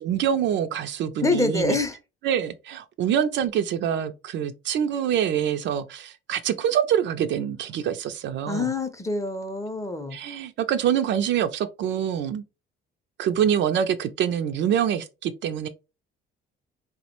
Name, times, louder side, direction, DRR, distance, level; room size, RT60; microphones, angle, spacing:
voice 1, 0.0-1.8 2.2-8.7 10.1-12.4 13.2-15.7, right 9 dB, 60° right, 0.4 m, -25 dB
voice 2, 1.2-2.0 8.5-10.2, left 3 dB, 15° left, 0.5 m, -26 dB
3.4 x 2.1 x 2.9 m
cardioid pair, 100°, 21 cm